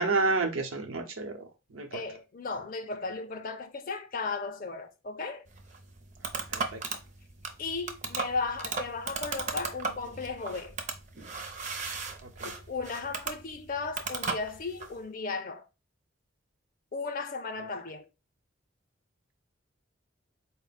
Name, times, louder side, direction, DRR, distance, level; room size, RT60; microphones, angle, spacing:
voice 1, 0.0-2.0 6.5-6.8 12.2-12.5, right 3 dB, 90° right, 0.8 m, -30 dB
voice 2, 1.9-5.5 7.6-10.8 12.4-15.7 16.9-18.0, left 4 dB, 45° left, 0.4 m, -35 dB
sound 1, 5.5-15.0, right 4 dB, 35° right, 0.5 m, -36 dB
4.2 x 2.1 x 3.9 m
head